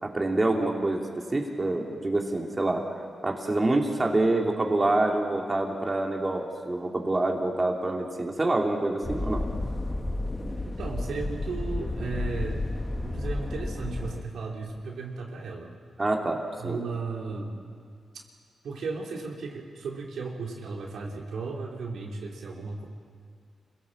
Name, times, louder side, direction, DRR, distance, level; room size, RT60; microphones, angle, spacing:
voice 1, 0.0-2.8 3.2-9.4 16.0-16.8, right 2 dB, 25° right, 0 dB, 3.0 m, -26 dB
sound 1, 9.0-14.2, left 2 dB, 25° left, 1.7 m, -31 dB
voice 2, 10.6-12.6 13.0-15.7 16.6-17.6 18.6-22.8, right 4 dB, 80° right, -1 dB, 3.2 m, -35 dB
26.5 x 17.0 x 7.4 m, 2.2 s
cardioid pair, 65°, 0 cm